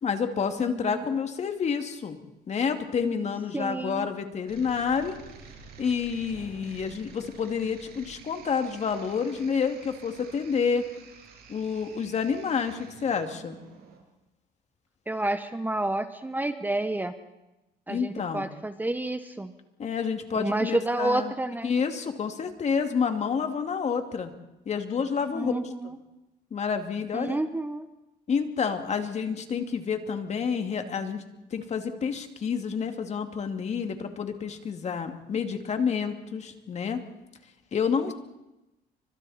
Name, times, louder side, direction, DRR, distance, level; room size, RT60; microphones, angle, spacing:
voice 1, 0.0-2.2 2.5-5.2 5.8-10.9 11.5-13.6 17.9-18.5 19.8-21.3 21.6-24.3 24.7-25.6 26.5-27.4 28.3-31.2 31.5-37.0 37.7-38.1, left 6 dB, 40° left, 6 dB, 2.5 m, -29 dB
voice 2, 0.6-1.2 3.5-4.1 15.1-17.1 17.9-19.5 20.3-21.7 25.3-26.0 27.1-27.9 38.1-38.2, right 2 dB, 10° right, 9 dB, 1.2 m, -30 dB
sound 1, 4.5-14.0, right 5 dB, 65° right, 6.8 m, -50 dB
30.0 x 25.0 x 4.3 m, 0.95 s
cardioid pair, 110°, 17 cm